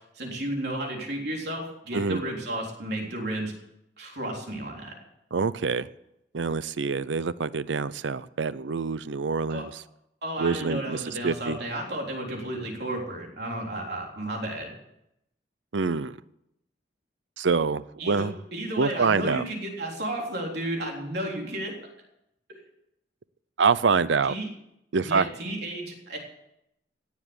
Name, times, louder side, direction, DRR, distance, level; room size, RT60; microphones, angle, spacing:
voice 1, 0.2-3.5 4.0-5.0 9.5-9.7 10.2-14.7 18.0-21.8 22.5-22.6 24.3-24.5 25.0-26.2, right 1 dB, 65° right, 0 dB, 3.6 m, -33 dB
voice 2, 5.3-5.9 6.3-9.8 10.4-11.6 15.7-16.2 17.4-18.3 18.8-19.4 23.6-24.4 24.9-25.3, right 5 dB, 85° right, 17 dB, 0.6 m, -26 dB
17.5 x 7.3 x 8.1 m, 0.83 s
head